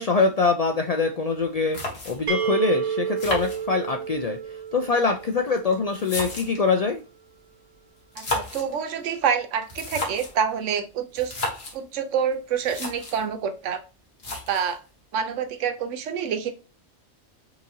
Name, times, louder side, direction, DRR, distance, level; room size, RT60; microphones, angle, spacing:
voice 1, 0.0-1.8 2.1-7.0, left 4 dB, 80° left, 0.3 m, -24 dB
sound 1, 1.4-1.5 1.7-2.4 3.2-4.1 5.0-6.7 8.0-8.8 9.6-10.4 11.2-11.8 12.3-12.4 12.6-13.3 14.2-14.8, left 1 dB, 60° left, 1.6 m, -33 dB
sound 2, 2.3-6.0, right 7 dB, 45° right, 0.7 m, -30 dB
voice 2, 8.2-11.3 11.7-13.8 14.5-14.8 15.1-16.5, right 7 dB, 85° right, 1.0 m, -27 dB
5.5 x 2.9 x 2.7 m
omnidirectional pair, 1.2 m